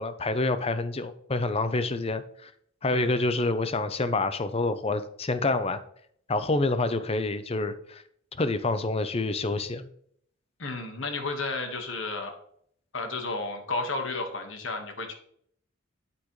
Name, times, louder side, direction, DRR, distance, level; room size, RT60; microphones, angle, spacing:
voice 1, 0.0-2.5 2.8-5.8 6.3-8.0 8.4-9.9, left 2 dB, 30° left, 11 dB, 0.6 m, -27 dB
voice 2, 10.6-12.4 12.9-15.1, left 3 dB, 70° left, 5 dB, 1.5 m, -32 dB
8.6 x 8.4 x 3.2 m, 0.66 s
head